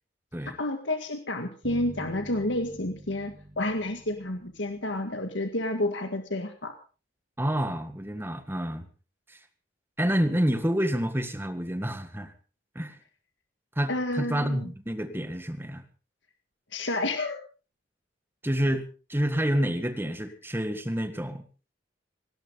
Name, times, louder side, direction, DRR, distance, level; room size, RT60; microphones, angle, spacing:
voice 1, 0.5-6.7 13.9-14.7 16.7-17.4, left 1 dB, 80° left, 6 dB, 1.9 m, -30 dB
sound 1, 1.6-5.6, right 1 dB, 25° right, 4.8 m, -47 dB
voice 2, 7.4-8.9 9.3-9.4 10.0-12.3 12.8-13.0 13.8-15.8 18.4-21.4, equal, 10° right, 8 dB, 1.7 m, -28 dB
18.5 x 18.0 x 3.9 m, 0.36 s
head